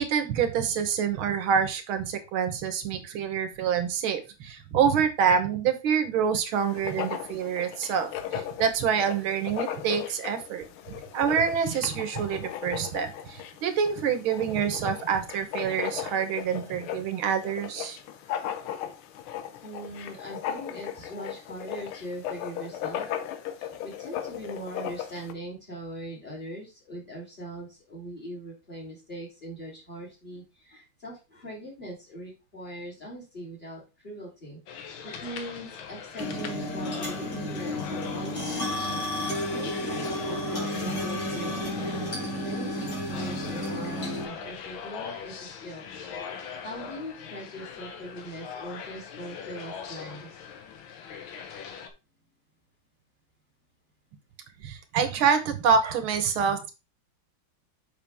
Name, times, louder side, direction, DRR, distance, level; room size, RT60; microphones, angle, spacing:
voice 1, 0.0-10.6 11.1-18.0 54.6-56.7, right 7 dB, 75° right, 9 dB, 1.9 m, -26 dB
Writing, 6.6-25.3, left 10 dB, 90° left, 1.7 m, -37 dB
voice 2, 19.6-23.1 23.6-38.7 39.5-45.8 46.6-50.3, right 1 dB, 20° left, -3 dB, 3.3 m, -41 dB
sound 1, 34.7-51.9, left 7 dB, 70° left, 1.7 m, -41 dB
sound 2, 36.2-44.2, left 1 dB, 55° left, 3.1 m, -32 dB
7.0 x 5.8 x 3.5 m, 0.28 s
omnidirectional pair, 2.3 m